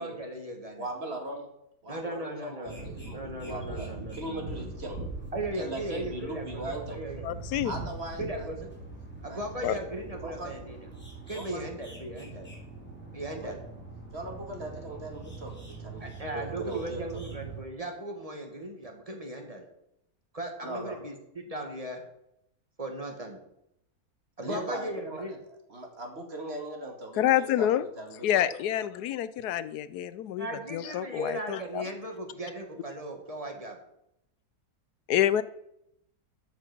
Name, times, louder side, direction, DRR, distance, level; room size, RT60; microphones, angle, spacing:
voice 1, 0.0-0.9 1.9-4.7 5.3-7.4 8.2-8.7 9.2-10.9 11.3-12.5 13.1-13.6 16.0-19.7 20.3-22.0 22.8-23.4 24.4-25.4 30.4-33.8, right 1 dB, 25° right, 3 dB, 1.8 m, -37 dB
voice 2, 0.7-1.5 1.8-5.0 5.5-7.0 7.6-8.5 9.3-9.4 10.2-10.5 11.3-11.6 13.3-13.6 14.1-17.2 20.6-21.0 24.4-27.7 28.0-28.5 28.8-28.9 30.6-30.7, right 1 dB, 40° right, 2 dB, 2.2 m, -39 dB
sound 1, 2.6-17.6, right 3 dB, 5° left, 3.2 m, -42 dB
voice 3, 7.2-7.7 9.6-9.7 27.2-27.9 28.2-31.8 35.1-35.4, left 11 dB, 80° left, 15 dB, 1.1 m, -27 dB
13.5 x 6.0 x 6.0 m, 0.80 s
omnidirectional pair, 1.7 m